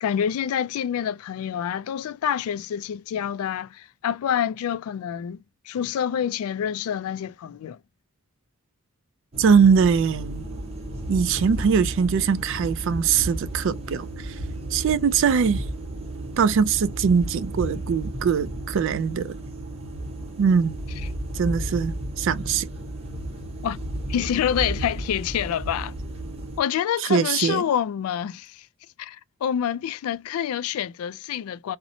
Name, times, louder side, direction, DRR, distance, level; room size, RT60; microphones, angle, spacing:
voice 1, 0.0-7.8 23.6-23.8 24.1-26.0 26.6-28.7 29.0-31.8, left 9 dB, 85° left, 0.3 m, -27 dB
sound 1, 9.3-26.6, right 1 dB, 30° right, 0.7 m, -33 dB
voice 2, 9.4-10.4 11.1-14.3 14.7-15.6 16.4-19.4 20.4-20.8 21.3-22.7 27.1-27.6, right 6 dB, 60° right, 0.3 m, -21 dB
2.8 x 2.0 x 2.6 m
head